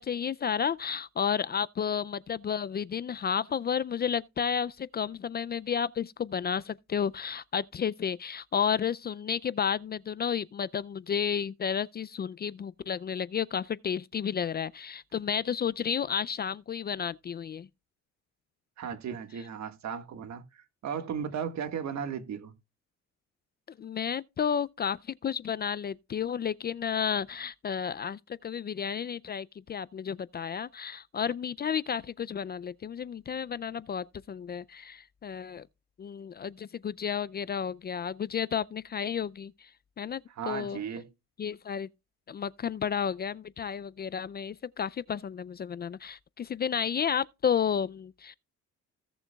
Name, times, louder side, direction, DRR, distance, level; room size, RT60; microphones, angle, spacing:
voice 1, 0.0-17.7 23.8-35.7 36.0-39.7 40.0-40.8 41.4-41.9 42.3-48.3, left 7 dB, 35° left, 0.4 m, -32 dB
voice 2, 18.8-22.5 40.3-41.1, right 7 dB, 65° right, 1.7 m, -36 dB
16.5 x 6.9 x 2.3 m
cardioid pair, 90°, 30 cm